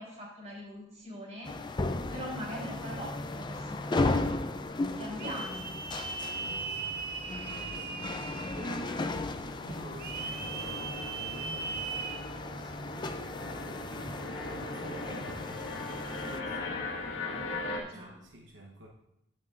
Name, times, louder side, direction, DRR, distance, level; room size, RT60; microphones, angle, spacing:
voice 1, 0.0-1.5 2.1-4.3 5.0-5.7 17.7-18.1, equal, 35° right, -4 dB, 3.6 m, -42 dB
sound 1, 1.4-16.4, left 2 dB, 25° left, 0.4 m, -36 dB
sound 2, 5.2-9.1 10.0-12.2, right 5 dB, 55° right, 0.7 m, -39 dB
voice 2, 6.7-18.9, right 1 dB, 75° right, -1 dB, 1.0 m, -50 dB
sound 3, 6.9-17.8, left 2 dB, 85° left, 1.6 m, -40 dB
16.0 x 6.0 x 2.5 m, 0.83 s
head